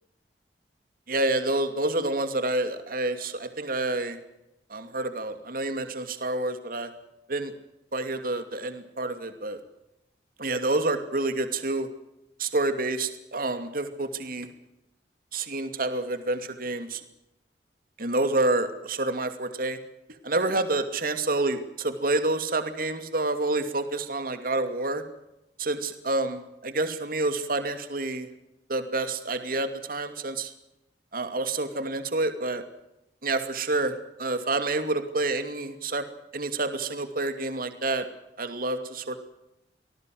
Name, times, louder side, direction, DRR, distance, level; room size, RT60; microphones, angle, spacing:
voice 1, 1.1-4.2 4.7-6.9 7.3-7.5 7.9-9.6 10.4-11.9 12.4-14.5 15.3-17.0 18.0-19.8 20.2-25.0 25.6-28.3 28.7-30.5 31.1-32.6 33.2-33.9 34.2-36.1 36.3-38.1 38.4-39.2, right 2 dB, 55° right, 9 dB, 2.6 m, -28 dB
25.5 x 19.5 x 7.8 m, 0.87 s
head